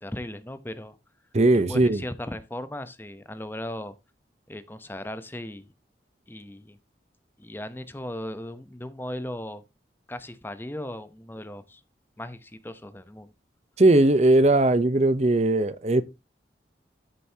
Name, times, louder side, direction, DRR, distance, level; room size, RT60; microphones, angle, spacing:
voice 1, 0.0-1.0 1.7-4.0 4.5-5.7 6.3-6.8 7.4-9.6 10.1-11.8 12.2-13.3, left 1 dB, 10° left, 0.7 m, -37 dB
voice 2, 1.3-2.0 13.8-16.0, right 2 dB, 40° right, 0.7 m, -19 dB
13.5 x 6.8 x 2.8 m
head